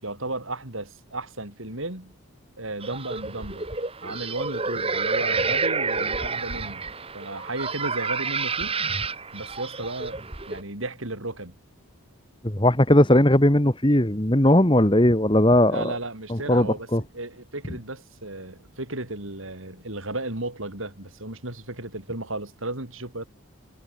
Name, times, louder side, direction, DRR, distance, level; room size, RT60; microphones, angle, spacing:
voice 1, 0.0-2.1 2.6-3.7 4.0-6.8 7.1-8.8 9.3-10.2 10.5-11.6 15.7-16.9 17.1-23.3, right 2 dB, 70° right, 5.8 m, -34 dB
sound 1, 2.8-10.6, right 4 dB, 25° right, 1.9 m, -29 dB
voice 2, 12.4-15.9 16.3-17.0, left 1 dB, 20° left, 2.0 m, -18 dB
head